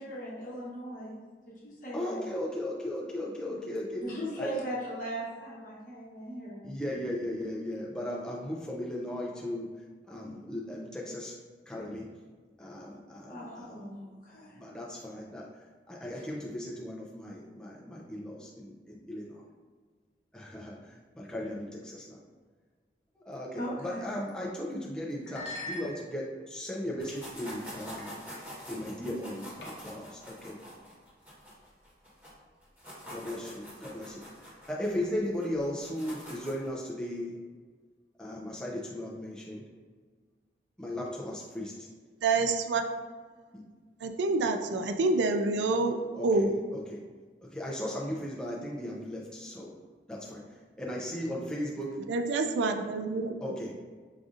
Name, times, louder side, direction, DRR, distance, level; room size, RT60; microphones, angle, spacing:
voice 1, 0.0-2.3 4.0-6.6 13.3-14.6 16.1-16.3 23.5-24.1, equal, 50° left, -5 dB, 0.9 m, -39 dB
voice 2, 1.9-4.0 4.4-4.5 6.6-9.7 10.1-11.3 11.7-12.0 12.6-13.7 14.5-15.5 15.9-19.4 20.3-20.8 21.2-22.2 23.3-28.1 28.7-30.6 33.1-34.2 34.7-37.3 38.2-39.6 40.8-41.7 46.1-46.5 46.9-47.0 47.5-49.7 50.1-50.4 50.8-51.9 53.4-53.8, left 1 dB, 5° left, -4 dB, 0.3 m, -36 dB
sound 1, 24.4-24.5 25.2-26.4 27.0-27.4 28.0-28.1 28.4-28.7 29.6-30.1, left 1 dB, 80° left, 0.7 m, -43 dB
sound 2, 27.0-32.3 32.6-36.7, equal, 10° right, 1.2 m, -45 dB
voice 3, 42.2-42.8 44.0-46.0 46.2-46.5 52.1-53.5, right 3 dB, 90° right, 7 dB, 0.3 m, -27 dB
4.8 x 2.6 x 2.4 m, 1.5 s
head